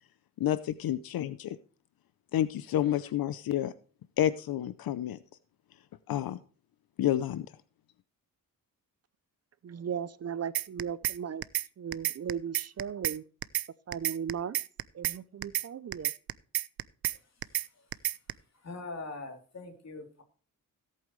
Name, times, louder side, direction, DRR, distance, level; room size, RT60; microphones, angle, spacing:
voice 1, 0.4-1.6 2.3-3.7 4.2-5.2 6.1-6.4 7.0-7.5, left 12 dB, 85° left, 0.7 m, -29 dB
voice 2, 9.6-11.4 11.8-13.2 13.9-14.6 14.9-16.1, right 7 dB, 45° right, 0.6 m, -36 dB
sound 1, 10.5-11.2 11.4-11.7 11.9-13.2 13.4-13.7 13.9-15.2 15.4-15.7 15.9-17.2 17.4-17.7 17.9-18.3, right 14 dB, 85° right, 0.6 m, -30 dB
voice 3, 18.5-20.2, left 3 dB, 45° left, 3.4 m, -42 dB
17.0 x 8.5 x 3.2 m
wide cardioid pair, 125°, 35 cm